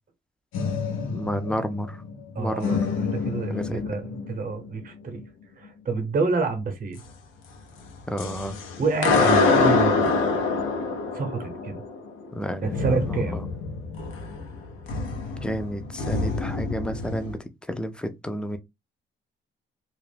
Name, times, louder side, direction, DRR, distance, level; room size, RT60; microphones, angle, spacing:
sound 1, 0.5-2.3 2.6-4.7 7.9-17.4, left 4 dB, 90° left, 0.6 m, -26 dB
voice 1, 1.0-2.0 2.4-2.8 3.5-3.8 8.1-8.6 12.3-13.4 15.4-18.6, equal, 5° left, 0.4 m, -31 dB
voice 2, 2.3-5.2 5.6-7.0 8.8-10.2 11.1-11.8 12.6-13.4, right 4 dB, 45° right, 0.7 m, -28 dB
2.3 x 2.0 x 3.2 m
cardioid pair, 90°, 20 cm